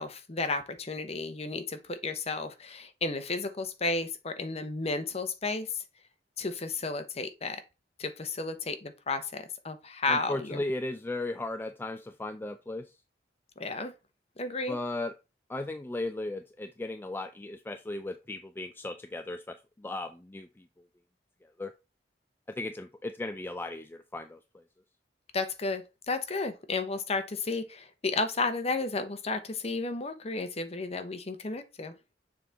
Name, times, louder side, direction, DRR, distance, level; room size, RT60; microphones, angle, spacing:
voice 1, 0.0-5.8 6.4-7.6 8.0-10.6 13.6-13.9 14.4-14.8 25.3-31.9, left 3 dB, 35° left, 0.9 m, -33 dB
voice 2, 10.1-12.9 14.7-15.1 15.5-20.7 21.6-21.7 22.6-24.6, left 2 dB, 10° left, 0.3 m, -36 dB
6.9 x 3.5 x 3.9 m
head